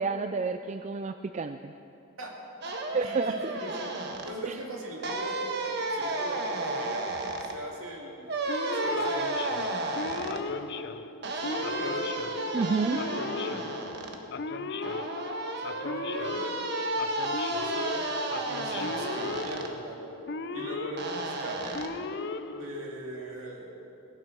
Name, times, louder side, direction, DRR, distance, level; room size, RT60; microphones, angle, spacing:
voice 1, 0.0-1.7 2.9-3.4 4.4-4.6 12.5-13.0, right 4 dB, 35° right, 8 dB, 0.3 m, -29 dB
sound 1, 2.6-4.3 5.0-7.5 8.3-10.4 11.2-14.2 14.8-19.7 21.0-21.9, right 2 dB, 55° right, 1.3 m, -33 dB
voice 2, 3.0-3.9 4.2-5.6 5.9-7.1 7.4-8.3 8.7-9.7 11.4-13.2 15.6-16.5 17.6-20.1 20.5-21.9 22.5-23.7, right 1 dB, 80° right, -1 dB, 2.6 m, -40 dB
Male speech man speaking / Siren, 8.5-23.2, left 3 dB, 55° left, 0.6 m, -37 dB
18.5 x 11.0 x 6.1 m, 2.9 s
head